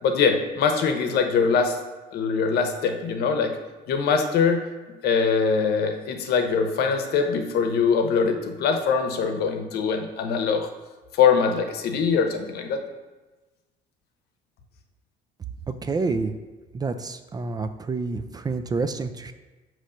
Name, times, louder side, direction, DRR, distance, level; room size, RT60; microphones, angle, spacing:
voice 1, 0.0-1.8 2.1-3.5 3.9-4.6 5.0-10.7 11.1-12.8, left 5 dB, 70° left, 5 dB, 0.8 m, -22 dB
voice 2, 15.7-16.3 16.7-19.3, right 4 dB, 25° right, 9 dB, 0.3 m, -28 dB
6.4 x 3.1 x 5.5 m, 1.2 s
cardioid pair, 110°, 17 cm